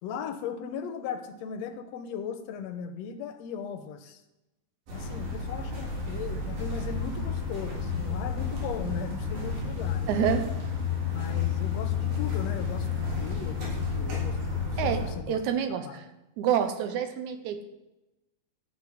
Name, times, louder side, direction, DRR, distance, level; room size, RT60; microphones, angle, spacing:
voice 1, 0.0-4.2 4.9-10.1 11.1-15.4 15.8-16.0, left 7 dB, 65° left, 7 dB, 1.8 m, -37 dB
sound 1, 4.9-15.1, left 5 dB, 90° right, 5.4 m, -31 dB
voice 2, 10.1-10.5 14.8-16.0 16.4-17.6, right 8 dB, 70° right, 8 dB, 2.1 m, -28 dB
12.5 x 6.5 x 8.5 m, 0.98 s
omnidirectional pair, 3.9 m